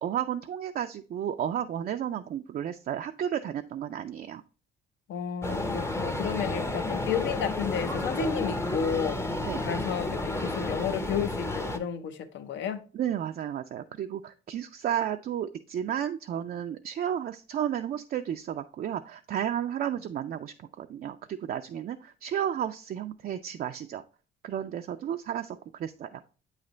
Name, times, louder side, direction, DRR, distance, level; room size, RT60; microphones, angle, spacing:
voice 1, 0.0-4.4 9.4-9.6 12.9-24.0 24.4-26.2, right 9 dB, 50° right, 0.4 m, -32 dB
voice 2, 5.1-9.2 9.6-12.8, left 7 dB, 70° left, 0.7 m, -32 dB
sound 1, 5.4-11.8, left 2 dB, 15° left, 0.6 m, -31 dB
7.9 x 3.3 x 3.8 m
cardioid pair, 90°, 20 cm